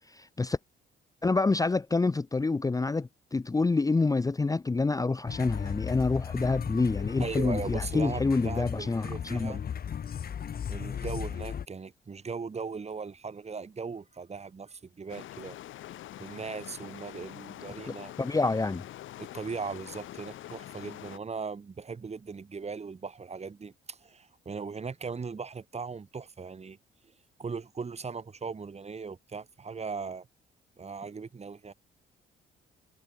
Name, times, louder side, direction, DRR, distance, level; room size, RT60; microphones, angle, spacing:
voice 1, 0.1-0.6 1.2-9.6 17.9-18.8, left 3 dB, 15° left, 0.7 m, -27 dB
sound 1, 5.3-11.7, left 8 dB, 50° left, 1.5 m, -36 dB
voice 2, 7.2-9.6 10.7-15.6 16.2-18.1 19.2-26.8 27.4-30.3 30.8-31.7, right 5 dB, 35° right, 2.6 m, -38 dB
sound 2, 15.1-21.2, left 13 dB, 80° left, 2.0 m, -45 dB
cardioid pair, 90°, 20 cm